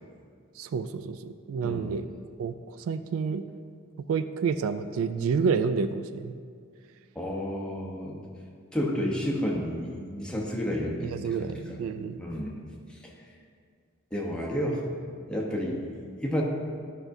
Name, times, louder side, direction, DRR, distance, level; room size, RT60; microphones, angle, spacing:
voice 1, 0.6-2.1 2.4-3.5 4.1-6.4 11.0-12.2, right 5 dB, 80° right, 11 dB, 0.3 m, -29 dB
voice 2, 1.6-1.9 7.1-8.2 8.7-11.5 12.2-12.6 12.9-13.1 14.1-14.9 15.3-16.4, equal, 5° left, -3 dB, 0.8 m, -31 dB
11.0 x 5.7 x 2.6 m, 2.1 s
head